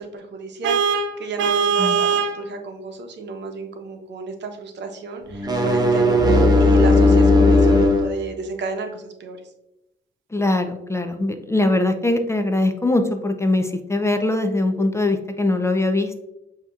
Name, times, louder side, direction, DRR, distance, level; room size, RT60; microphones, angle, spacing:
voice 1, 0.0-9.4, right 3 dB, 60° right, 5 dB, 0.8 m, -32 dB
Vehicle horn car horn honking, 0.6-2.4, right 6 dB, 80° right, 0.5 m, -20 dB
sound 1, 5.3-8.1, left 2 dB, 20° right, 0.9 m, -15 dB
voice 2, 10.3-16.1, left 2 dB, 15° left, 6 dB, 0.4 m, -21 dB
6.6 x 2.8 x 2.3 m, 0.91 s
cardioid pair, 90°, 20 cm